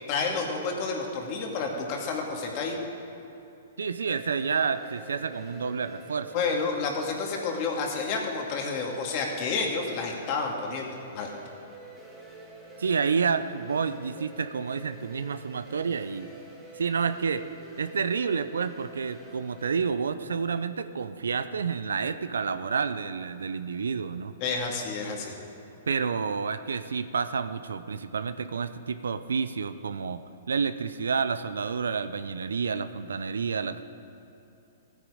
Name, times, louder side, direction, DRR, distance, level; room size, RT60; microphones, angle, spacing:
voice 1, 0.1-2.8 6.3-11.3 24.4-25.4, left 4 dB, 45° left, 1 dB, 2.2 m, -30 dB
voice 2, 3.8-6.4 12.8-16.3 16.8-17.4 17.8-24.3 25.9-33.8, right 5 dB, 80° right, 11 dB, 0.5 m, -29 dB
sound 1, 4.1-19.8, right 2 dB, 5° right, 2.6 m, -48 dB
15.5 x 9.3 x 5.0 m, 2.9 s
hypercardioid pair, 115°, 0 cm